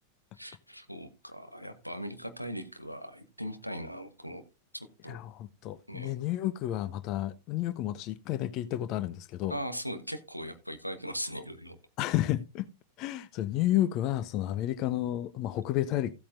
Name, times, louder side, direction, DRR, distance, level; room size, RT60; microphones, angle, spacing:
voice 1, 0.4-4.4 4.7-5.2 5.9-6.1 9.5-11.8, equal, 90° left, 1.2 m, -39 dB
voice 2, 5.1-9.6 12.0-12.7 13.0-16.1, left 13 dB, 40° left, 0.5 m, -31 dB
15.0 x 8.5 x 2.5 m
figure-of-eight pair, 90°, 0 cm